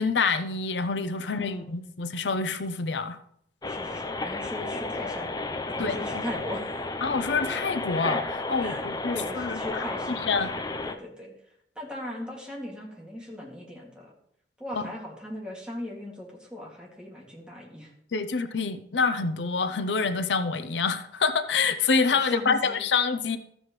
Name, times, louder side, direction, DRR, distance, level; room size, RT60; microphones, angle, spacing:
voice 1, 0.0-3.2 5.8-6.2 7.0-9.6 10.3-10.5 14.8-14.9 18.1-23.4, left 4 dB, 85° left, 10 dB, 0.6 m, -27 dB
voice 2, 1.2-1.8 3.6-5.3 5.7-6.8 8.6-8.9 9.1-10.5 10.8-11.4 11.8-14.1 14.6-17.9 22.1-22.8, left 1 dB, 5° right, -3 dB, 2.3 m, -39 dB
sound 1, 3.6-10.9, left 3 dB, 20° left, 0.6 m, -32 dB
13.5 x 7.7 x 3.2 m, 0.71 s
head